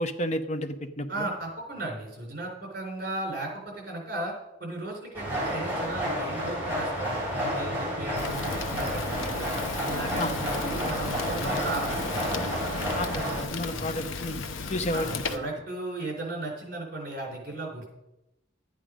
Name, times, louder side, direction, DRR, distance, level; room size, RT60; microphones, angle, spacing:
voice 1, 0.0-1.3 10.2-10.3 12.9-14.4 14.7-15.4, left 1 dB, 35° left, 7 dB, 0.9 m, -31 dB
voice 2, 1.1-4.3 4.6-9.5 9.8-12.2 13.7-14.0 14.9-17.9, right 2 dB, 45° right, 0 dB, 4.0 m, -36 dB
sound 1, 5.1-13.4, equal, 10° right, 4.5 m, -31 dB
Fire, 8.2-15.4, left 4 dB, 80° left, 0.9 m, -35 dB
11.5 x 9.1 x 5.1 m, 0.91 s
head